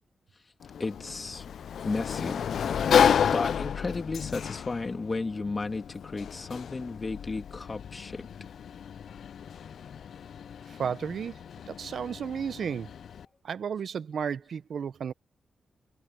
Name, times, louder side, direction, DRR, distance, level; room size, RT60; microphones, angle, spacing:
Sliding door, 0.6-13.2, left 8 dB, 75° left, 0.3 m, -31 dB
voice 1, 0.8-1.5 1.8-3.0 3.3-8.3, left 3 dB, 35° left, 2.6 m, -34 dB
voice 2, 10.7-11.4 11.7-12.9 13.4-15.1, right 7 dB, 70° right, 0.7 m, -33 dB
cardioid pair, 85°, 0 cm